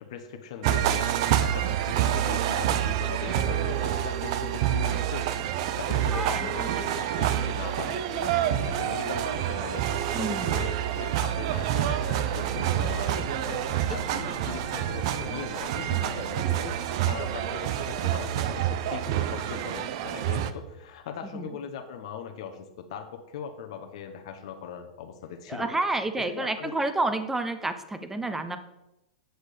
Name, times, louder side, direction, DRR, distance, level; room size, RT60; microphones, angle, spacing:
voice 1, 0.1-25.8 26.2-26.7, left 7 dB, 65° left, 5 dB, 1.0 m, -40 dB
sound 1, 0.6-20.5, right 11 dB, 60° right, 0.7 m, -27 dB
voice 2, 6.1-6.9 10.1-10.6 14.2-14.6 21.3-21.5 25.5-28.6, right 2 dB, 10° right, 9 dB, 0.9 m, -30 dB
sound 2, 12.2-21.3, equal, 80° right, 2.7 m, -45 dB
8.0 x 6.4 x 5.0 m, 0.91 s
hypercardioid pair, 110°, 3 cm